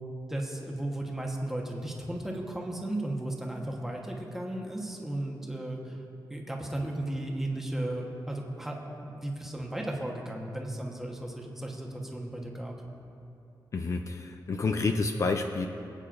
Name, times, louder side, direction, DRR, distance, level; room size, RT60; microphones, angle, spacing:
voice 1, 0.3-6.0 6.3-12.7, right 1 dB, 5° right, -1 dB, 1.1 m, -35 dB
voice 2, 13.7-15.7, left 3 dB, 40° left, 5 dB, 0.4 m, -29 dB
22.0 x 8.7 x 2.6 m, 2.9 s
wide cardioid pair, 175°, 8 cm